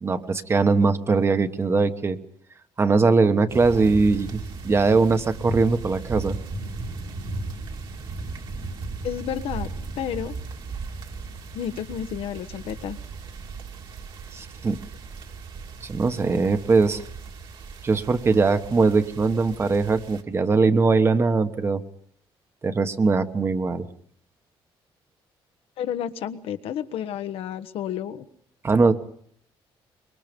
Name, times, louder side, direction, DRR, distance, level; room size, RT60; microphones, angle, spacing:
voice 1, 0.0-2.2 2.8-6.4 14.3-14.8 15.8-17.0 17.8-21.8 22.6-23.9 28.6-28.9, right 4 dB, 25° right, 9 dB, 1.3 m, -21 dB
sound 1, 3.5-20.2, right 3 dB, 55° right, 2.6 m, -36 dB
voice 2, 9.0-9.7 10.0-10.3 11.5-13.0 25.8-28.3, left 9 dB, 75° left, 10 dB, 1.3 m, -31 dB
25.0 x 23.0 x 5.3 m, 0.64 s
cardioid pair, 140°, 10 cm